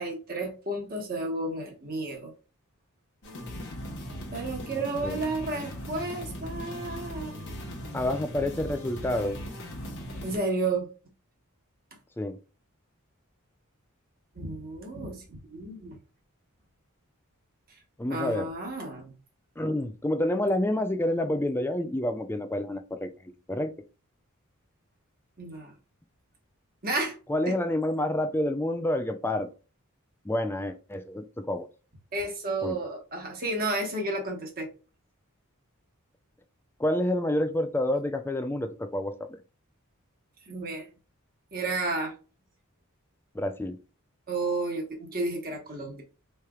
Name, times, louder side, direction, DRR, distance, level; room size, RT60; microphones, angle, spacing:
voice 1, 0.0-2.3 4.3-7.3 10.2-10.9 14.4-16.0 18.1-19.1 25.4-25.7 26.8-27.2 27.5-27.6 32.1-34.7 40.5-40.9 41.5-42.1 44.3-46.0, right 2 dB, 40° right, 1.2 m, -32 dB
sound 1, 3.2-10.4, equal, 55° left, 1.2 m, -39 dB
voice 2, 7.9-9.4 12.2-12.4 18.0-18.5 19.6-23.7 27.3-29.5 30.2-31.7 32.6-32.8 36.8-39.4 43.3-43.8, left 1 dB, 10° left, 0.3 m, -28 dB
4.3 x 3.3 x 2.3 m
head